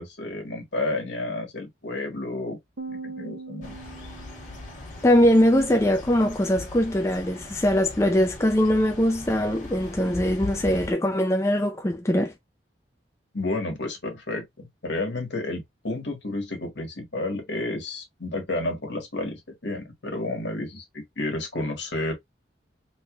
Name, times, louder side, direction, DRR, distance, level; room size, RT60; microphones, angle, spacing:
voice 1, 0.0-2.6 2.9-3.8 13.3-22.1, left 2 dB, 70° left, 1.6 m, -31 dB
sound 1, 2.8-5.2, right 3 dB, 90° right, 0.9 m, -40 dB
sound 2, 3.6-10.9, left 2 dB, 45° left, 1.7 m, -39 dB
voice 2, 5.0-12.3, equal, 15° left, 0.4 m, -21 dB
3.8 x 3.5 x 2.4 m
head